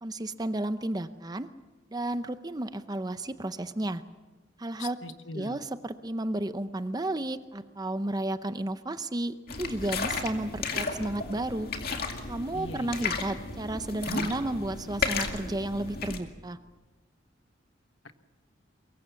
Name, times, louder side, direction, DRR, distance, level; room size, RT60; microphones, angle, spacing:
voice 1, 0.0-1.5 1.9-4.0 4.6-5.0 5.3-11.7 12.3-16.6, right 1 dB, 20° right, 11 dB, 0.6 m, -32 dB
voice 2, 4.8-5.6 12.5-13.1 18.0-18.1, left 2 dB, 80° left, 9 dB, 1.3 m, -41 dB
sound 1, 9.5-16.2, left 4 dB, 55° left, 2.3 m, -34 dB
23.5 x 22.5 x 7.0 m, 1.2 s
head